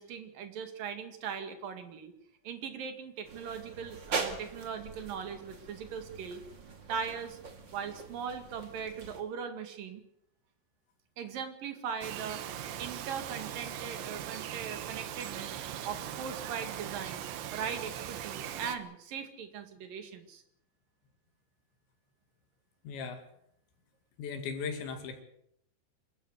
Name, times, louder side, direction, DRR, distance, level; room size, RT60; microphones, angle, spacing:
voice 1, 0.0-2.1 2.4-6.4 6.9-7.4 7.7-10.0 11.2-12.4 12.8-15.6 15.9-20.4, right 7 dB, 55° right, 8 dB, 3.6 m, -39 dB
sound 1, 3.2-9.2, right 4 dB, 35° right, 2.0 m, -41 dB
Bird vocalization bird call bird song, 12.0-18.8, right 10 dB, 85° right, 3.7 m, -40 dB
voice 2, 22.8-23.2 24.2-25.2, left 5 dB, 90° left, 5 dB, 4.6 m, -37 dB
26.0 x 14.0 x 8.2 m, 0.73 s
omnidirectional pair, 5.0 m